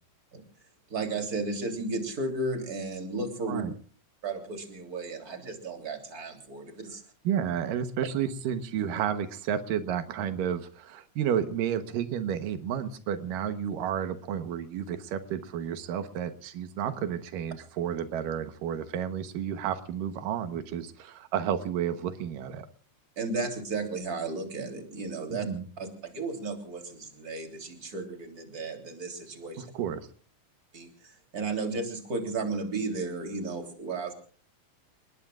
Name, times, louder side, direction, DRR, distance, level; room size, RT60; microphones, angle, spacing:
voice 1, 0.9-3.6 4.2-7.0 23.2-25.5 25.8-25.9 26.1-29.7 30.7-34.1, right 3 dB, 30° right, 5 dB, 3.5 m, -34 dB
voice 2, 7.2-22.7 25.3-25.7 29.6-30.0, right 9 dB, 90° right, 10 dB, 2.8 m, -31 dB
30.0 x 20.0 x 2.4 m, 0.42 s
omnidirectional pair, 3.7 m